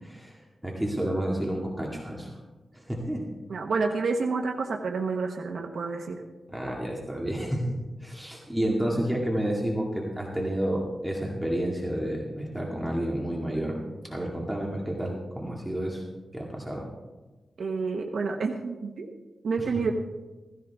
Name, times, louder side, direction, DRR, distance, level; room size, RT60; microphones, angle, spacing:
voice 1, 0.0-2.4 2.7-3.2 6.5-7.6 8.0-16.0 16.3-16.9 19.6-19.8, right 1 dB, 10° right, -2 dB, 2.0 m, -30 dB
voice 2, 3.5-6.2 17.6-19.1 19.4-19.9, right 4 dB, 85° right, 2 dB, 1.0 m, -29 dB
15.5 x 15.5 x 3.5 m, 1.2 s
wide cardioid pair, 100°, 0 cm